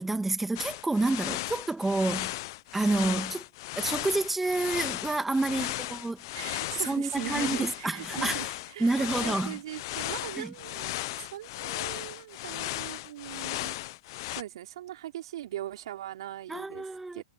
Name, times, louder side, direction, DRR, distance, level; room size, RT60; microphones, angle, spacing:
voice 1, 0.0-2.3 2.7-3.4 3.7-6.2 6.8-8.5 8.8-9.6 10.4-10.5 16.5-17.2, right 2 dB, 5° right, 1.6 m, -29 dB
sound 1, 0.6-14.4, left 19 dB, 45° left, 0.5 m, -36 dB
voice 2, 6.3-13.8 14.3-17.2, right 12 dB, 65° right, 3.6 m, -40 dB
hypercardioid pair, 140°, 3 cm